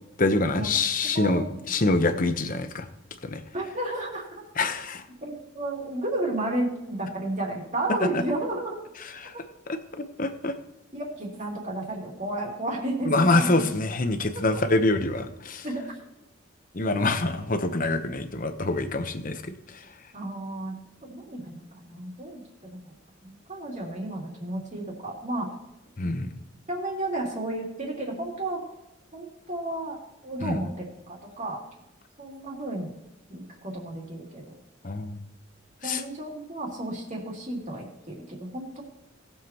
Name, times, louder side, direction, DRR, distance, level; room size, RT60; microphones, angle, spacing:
voice 1, 0.2-2.9 3.2-3.4 4.6-5.0 8.1-8.2 9.1-9.4 9.7-10.5 13.1-15.7 16.7-20.0 26.0-26.3 30.4-30.6 34.8-35.2 35.8-36.0, left 2 dB, 45° left, 8 dB, 0.9 m, -26 dB
voice 2, 3.5-4.4 5.2-8.8 9.3-9.4 10.9-13.7 15.6-16.0 16.9-17.0 20.1-20.7 21.0-25.5 26.0-26.1 26.7-28.6 29.1-31.6 32.2-32.9 33.3-34.5 35.8-38.8, right 1 dB, 40° right, -1 dB, 2.9 m, -32 dB
19.0 x 7.4 x 3.0 m, 0.91 s
head